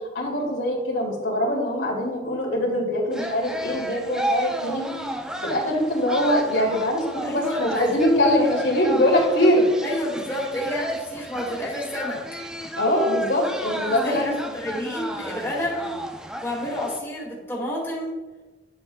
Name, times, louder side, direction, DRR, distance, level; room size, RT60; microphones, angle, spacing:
voice 1, 0.1-4.9 5.4-9.7 12.8-14.4, equal, 80° left, -2 dB, 2.5 m, -22 dB
sound 1, 3.1-17.0, right 1 dB, 5° right, 0.5 m, -33 dB
voice 2, 7.2-7.8 9.8-12.2 14.0-15.9 16.4-18.2, left 1 dB, 15° left, -6 dB, 2.3 m, -29 dB
9.9 x 7.2 x 2.4 m, 1.2 s
head